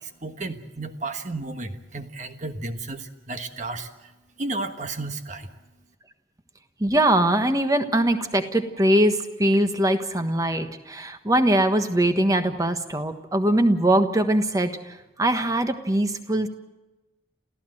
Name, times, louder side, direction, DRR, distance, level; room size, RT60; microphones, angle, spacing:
voice 1, 0.0-4.1 4.4-5.5, right 2 dB, 40° right, 7 dB, 1.4 m, -33 dB
voice 2, 6.8-16.5, right 1 dB, 20° right, 8 dB, 1.4 m, -22 dB
28.5 x 15.0 x 7.8 m, 1.1 s
head